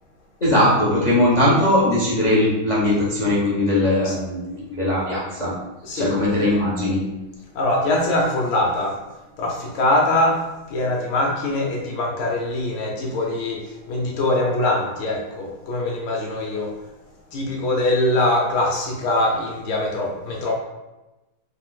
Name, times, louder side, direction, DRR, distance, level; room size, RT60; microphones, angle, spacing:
voice 1, 0.4-5.5 6.0-7.0, left 1 dB, 90° left, -7 dB, 0.3 m, -19 dB
voice 2, 5.8-6.2 7.5-9.0 9.4-16.7 17.3-20.5, left 1 dB, 75° left, -1 dB, 1.5 m, -23 dB
4.5 x 2.5 x 3.7 m, 1.0 s
omnidirectional pair, 2.3 m